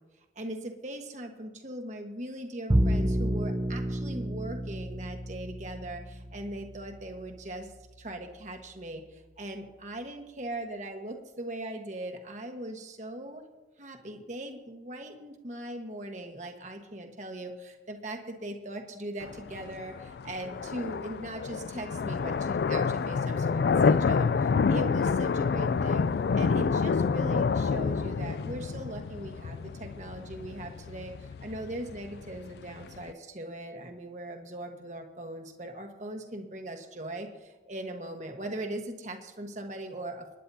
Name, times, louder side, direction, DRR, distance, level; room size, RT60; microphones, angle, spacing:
voice 1, 0.3-7.7 8.0-13.4 13.8-26.1 26.3-40.4, right 1 dB, 40° right, 4 dB, 1.4 m, -40 dB
Bowed string instrument, 2.7-9.1, equal, 25° right, 0.8 m, -32 dB
sound 1, 19.2-33.1, left 5 dB, 60° left, 0.3 m, -28 dB
29.0 x 9.9 x 2.8 m, 1.2 s
head